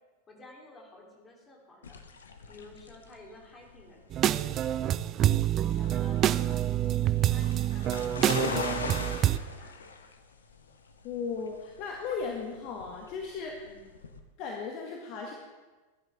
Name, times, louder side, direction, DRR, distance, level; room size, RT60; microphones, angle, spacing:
voice 1, 0.3-2.0 2.5-4.0 4.4-5.2 5.8-6.7 7.3-9.9 13.6-13.9, left 2 dB, 20° left, -1 dB, 3.8 m, -52 dB
sound 1, 1.8-14.2, left 4 dB, 70° left, 1.2 m, -40 dB
sound 2, 4.1-9.4, right 12 dB, 30° right, 0.4 m, -27 dB
voice 2, 11.0-13.6 14.4-15.3, left 5 dB, 40° left, 1 dB, 1.6 m, -36 dB
20.0 x 11.0 x 3.7 m, 1.3 s
figure-of-eight pair, 90°, 0 cm